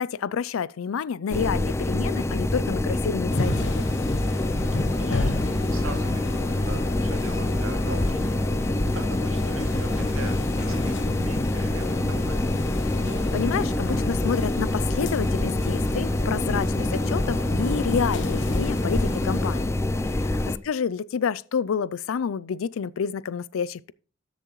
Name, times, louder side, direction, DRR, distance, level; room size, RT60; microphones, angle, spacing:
voice 1, 0.0-3.9 13.3-19.7 20.3-23.9, left 6 dB, 80° left, 0.4 m, -29 dB
sound 1, 1.3-20.6, left 1 dB, 15° left, 0.4 m, -26 dB
sound 2, 3.3-19.7, left 2 dB, 65° left, 1.3 m, -33 dB
voice 2, 4.3-8.1 8.5-12.5 20.0-20.4, right 2 dB, 90° right, 2.3 m, -42 dB
13.5 x 7.2 x 3.1 m
head